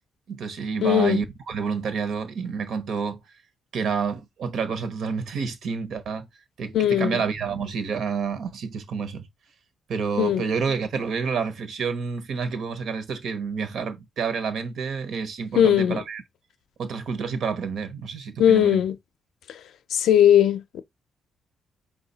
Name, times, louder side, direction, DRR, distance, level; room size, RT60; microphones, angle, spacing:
voice 1, 0.3-3.2 3.7-6.3 6.6-9.3 9.9-16.2 16.8-18.8, right 5 dB, 55° right, 0.8 m, -29 dB
voice 2, 0.8-1.2 6.7-7.2 10.2-10.4 15.5-16.0 18.4-19.0 19.5-19.6 19.9-20.8, left 10 dB, 70° left, 0.5 m, -19 dB
4.8 x 2.2 x 4.0 m
cardioid pair, 150°, 0 cm